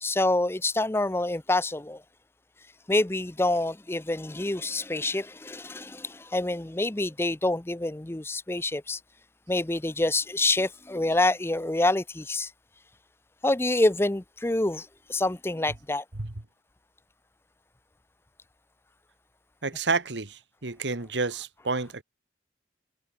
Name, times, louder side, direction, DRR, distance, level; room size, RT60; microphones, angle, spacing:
voice 1, 0.0-2.0 2.9-9.0 9.5-12.5 13.4-16.0, left 2 dB, 15° left, 0.6 m, -27 dB
voice 2, 19.6-22.0, right 4 dB, 85° right, 1.7 m, -30 dB
head